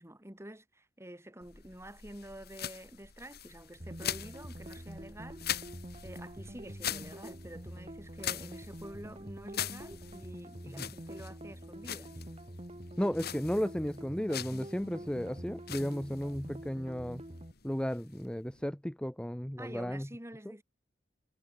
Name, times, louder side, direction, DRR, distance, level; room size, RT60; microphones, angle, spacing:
voice 1, 0.0-5.6 6.0-12.1 19.6-20.6, right 1 dB, 15° right, 4.0 m, -48 dB
sound 1, 1.4-18.7, left 10 dB, 60° left, 2.2 m, -43 dB
sound 2, 3.8-17.5, right 1 dB, 35° right, 3.1 m, -46 dB
voice 2, 13.0-17.2 17.6-20.1, equal, 5° left, 0.9 m, -34 dB
head